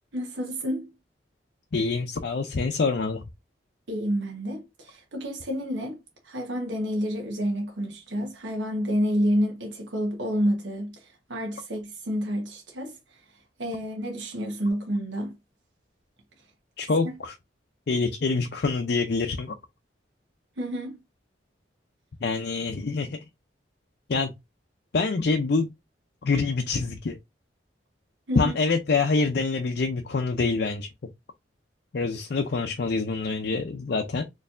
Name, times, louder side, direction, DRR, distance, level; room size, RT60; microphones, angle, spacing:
voice 1, 0.1-0.9 3.9-6.0 6.2-13.2 13.6-15.3 17.0-17.2 20.6-21.0 28.3-28.6, equal, 85° right, 1.2 m, -29 dB
voice 2, 1.7-3.2 16.8-17.3 17.9-19.5 22.2-23.2 24.1-24.3 24.9-25.7 26.2-27.2 28.4-30.9 31.9-34.2, left 4 dB, 60° left, 0.5 m, -26 dB
4.2 x 3.1 x 2.5 m
head